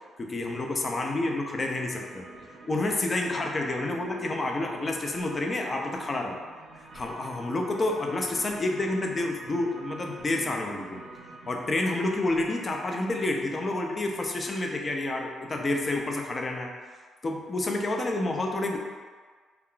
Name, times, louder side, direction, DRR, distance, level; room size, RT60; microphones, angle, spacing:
voice 1, 0.2-2.3 2.7-6.4 6.9-11.0 11.5-16.7 17.2-18.8, left 2 dB, 35° left, 2 dB, 0.4 m, -29 dB
sound 1, 1.9-13.5, right 2 dB, 60° right, 0.5 m, -47 dB
2.3 x 2.2 x 3.7 m, 1.5 s
cardioid pair, 90°, 0 cm